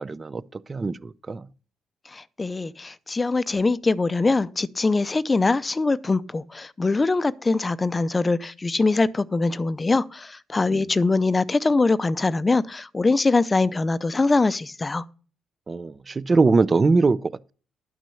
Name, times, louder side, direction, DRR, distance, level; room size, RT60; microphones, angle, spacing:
voice 1, 0.0-1.5 10.7-11.0 15.7-17.5, right 4 dB, 30° right, 0.5 m, -22 dB
voice 2, 2.1-15.0, left 3 dB, 25° left, 0.5 m, -23 dB
11.5 x 6.1 x 7.0 m
cardioid pair, 90°, 0 cm